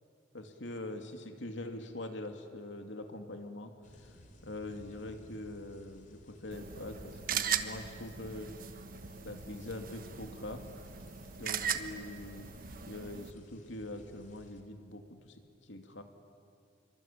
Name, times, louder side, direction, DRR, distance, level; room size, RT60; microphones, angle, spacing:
voice 1, 0.3-3.7 4.0-4.1 4.4-8.7 9.2-10.6 11.4-12.6 12.9-16.0, left 1 dB, 85° left, 5 dB, 2.6 m, -43 dB
sound 1, 3.8-14.6, left 1 dB, 45° left, 3.1 m, -58 dB
sound 2, 6.5-13.3, right 7 dB, 50° right, 1.2 m, -39 dB
27.5 x 24.0 x 8.6 m, 2.3 s
head